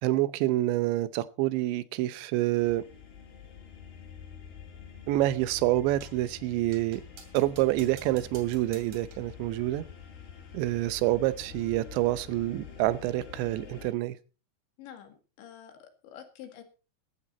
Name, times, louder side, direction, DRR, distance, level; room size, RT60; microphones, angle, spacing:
voice 1, 0.0-2.9 5.1-7.0 7.3-9.8 10.5-14.2, right 16 dB, 85° right, 16 dB, 3.1 m, -27 dB
sound 1, 2.6-13.9, left 7 dB, 65° left, 5.6 m, -47 dB
sound 2, 6.0-6.3 6.7-9.3, right 6 dB, 50° right, 3.6 m, -52 dB
voice 2, 14.8-16.6, left 9 dB, 85° left, 6 dB, 4.4 m, -48 dB
15.5 x 12.5 x 4.2 m, 0.34 s
omnidirectional pair, 5.1 m